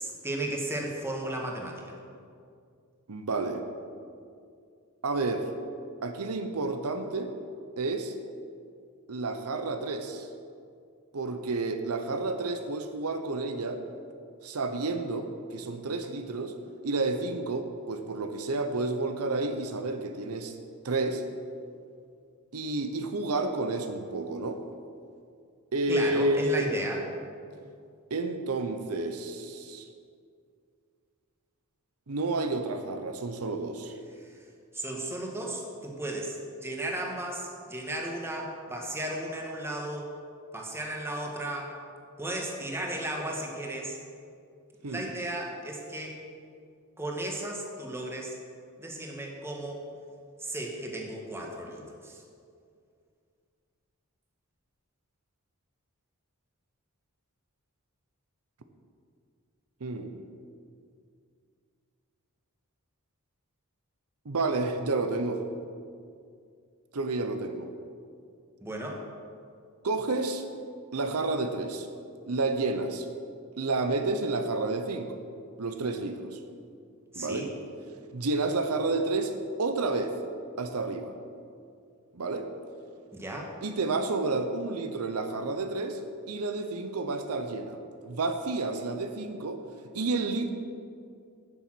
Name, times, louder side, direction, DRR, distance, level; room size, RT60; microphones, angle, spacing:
voice 1, 0.0-2.0 25.9-27.0 34.2-34.4 34.7-36.4 36.6-40.1 40.5-41.7 42.2-44.0 44.8-46.2 47.0-48.4 48.8-49.8 50.4-52.2 68.6-69.0 77.1-77.5 83.1-83.5, right 1 dB, 10° right, 0 dB, 1.4 m, -35 dB
voice 2, 3.1-3.6 5.0-5.5 6.0-7.3 7.8-8.1 9.1-10.3 11.1-13.8 14.4-16.5 16.8-20.6 20.8-21.2 22.5-24.6 25.7-26.7 28.1-29.9 32.1-33.9 44.8-45.1 59.8-60.2 64.2-65.4 66.9-67.7 69.8-70.4 70.9-71.9 72.3-73.1 73.6-75.2 75.6-76.4 77.2-77.5 78.1-79.3 79.6-80.1 80.6-81.1 82.1-82.5 83.6-86.0 86.3-89.6 89.9-90.5, right 3 dB, 85° right, 7 dB, 0.8 m, -30 dB
9.8 x 7.0 x 6.2 m, 2.3 s
head